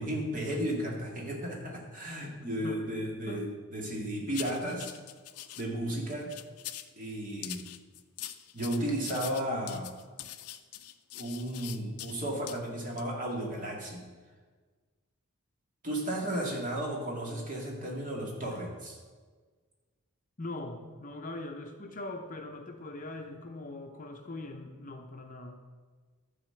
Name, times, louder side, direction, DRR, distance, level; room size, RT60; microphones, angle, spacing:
voice 1, 0.0-4.9 5.6-6.3 7.0-7.6 8.5-9.9 11.1-14.0 15.8-19.0, right 1 dB, 35° right, -1 dB, 2.1 m, -34 dB
sound 1, 4.3-5.6 6.1-6.9 7.4-12.1 12.5-12.6 13.0-13.1, left 13 dB, 85° left, 0.6 m, -43 dB
voice 2, 16.4-16.9 20.4-25.6, left 2 dB, 35° left, 4 dB, 0.8 m, -41 dB
12.5 x 4.2 x 7.7 m, 1.4 s
head